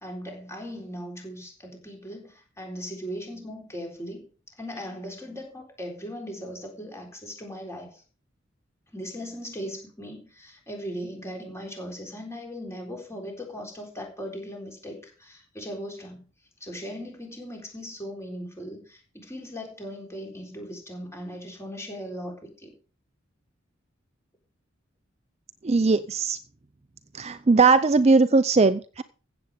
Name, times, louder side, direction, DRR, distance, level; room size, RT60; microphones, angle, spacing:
voice 1, 0.0-4.3 4.6-8.0 8.9-16.2 16.6-22.8, equal, 15° left, 3.9 m, -38 dB
voice 2, 25.6-26.4 27.1-29.0, right 4 dB, 35° right, 0.5 m, -19 dB
15.0 x 7.9 x 5.0 m
head